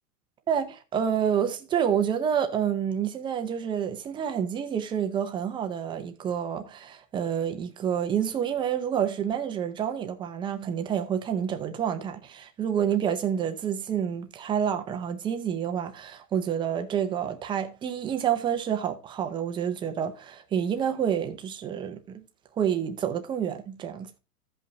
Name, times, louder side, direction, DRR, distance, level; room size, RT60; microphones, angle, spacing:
voice 1, 0.5-22.2 22.6-24.1, right 8 dB, 10° right, 0.5 m, -28 dB
15.5 x 5.4 x 2.6 m
hypercardioid pair, 135°, 48 cm